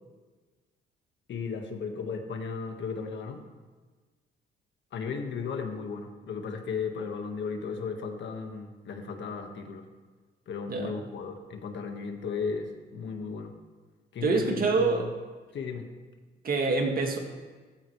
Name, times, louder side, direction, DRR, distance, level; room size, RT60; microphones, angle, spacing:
voice 1, 1.3-3.4 4.9-9.9 10.5-13.6 14.1-14.4 14.8-15.1 15.5-15.9, left 5 dB, 65° left, 4 dB, 1.7 m, -35 dB
voice 2, 14.2-15.1 16.4-17.2, right 4 dB, 45° right, 2 dB, 2.1 m, -26 dB
15.0 x 15.0 x 3.3 m, 1.4 s
cardioid pair, 90°, 20 cm